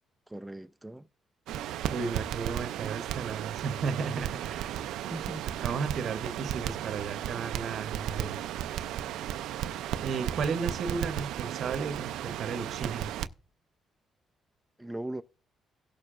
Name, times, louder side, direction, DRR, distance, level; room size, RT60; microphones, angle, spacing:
voice 1, 0.3-1.1 5.1-5.9 8.2-8.5 14.8-15.2, right 1 dB, 5° right, 0.3 m, -40 dB
Crackle, 1.5-13.3, right 11 dB, 85° right, 0.4 m, -35 dB
voice 2, 1.9-4.8 5.6-8.4 10.0-13.1, right 5 dB, 60° right, 0.8 m, -34 dB
17.0 x 6.7 x 2.4 m
cardioid pair, 90°, 0 cm